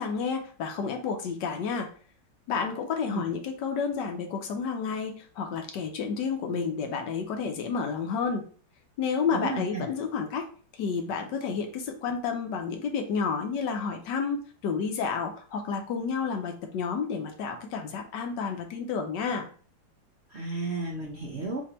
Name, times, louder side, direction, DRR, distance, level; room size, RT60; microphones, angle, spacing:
voice 1, 0.0-1.9 2.5-8.4 9.0-10.5 10.7-19.5, left 5 dB, 70° left, 4 dB, 1.3 m, -30 dB
voice 2, 9.3-9.9 20.3-21.6, right 3 dB, 60° right, 0 dB, 0.7 m, -33 dB
4.2 x 2.7 x 4.2 m, 0.43 s
omnidirectional pair, 2.1 m